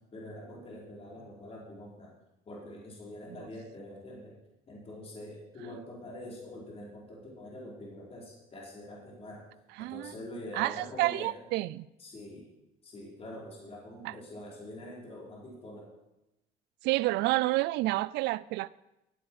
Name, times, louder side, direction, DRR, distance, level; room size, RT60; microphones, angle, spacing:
voice 1, 0.0-2.1 2.4-4.4 4.7-11.3 12.0-12.5 12.8-15.9, left 1 dB, 35° left, 5.0 m, -45 dB
voice 2, 9.8-10.1 10.5-11.9 14.0-14.1 16.8-18.7, right 19 dB, 85° right, 0.4 m, -29 dB
15.5 x 8.8 x 4.9 m
cardioid pair, 110°, 17 cm